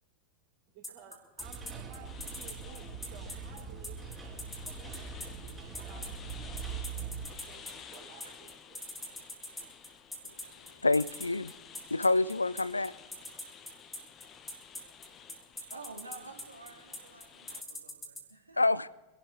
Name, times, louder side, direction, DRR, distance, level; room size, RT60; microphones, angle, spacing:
voice 1, 0.7-4.0 4.5-6.4 7.3-8.8, right 8 dB, 45° right, 5.1 m, -55 dB
sound 1, 0.8-18.2, left 2 dB, 5° left, 2.9 m, -41 dB
sound 2, 1.4-7.3, right 5 dB, 10° right, 3.5 m, -42 dB
sound 3, 2.0-17.6, left 7 dB, 30° left, 1.2 m, -53 dB
voice 2, 10.8-11.5 11.9-12.9 18.6-18.9, left 2 dB, 80° left, 0.4 m, -27 dB
voice 3, 15.6-18.6, right 3 dB, 80° right, 2.2 m, -50 dB
25.0 x 12.0 x 3.6 m
figure-of-eight pair, 90°, 0 cm